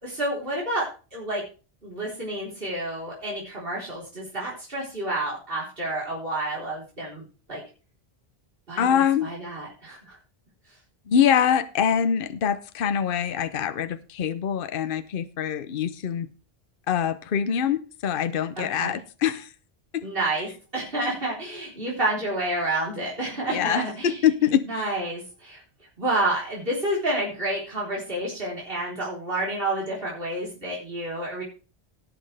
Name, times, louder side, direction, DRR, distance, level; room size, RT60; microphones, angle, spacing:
voice 1, 0.0-1.4 1.8-7.2 7.5-7.6 8.7-10.2 18.6-19.0 20.0-24.2 24.6-25.6 26.0-31.4, right 1 dB, 60° right, -5 dB, 4.3 m, -29 dB
voice 2, 8.8-9.3 11.1-16.3 16.9-19.5 19.9-20.0 23.5-24.9, left 8 dB, 60° left, 13 dB, 0.9 m, -24 dB
18.0 x 7.6 x 3.4 m, 0.35 s
omnidirectional pair, 1.1 m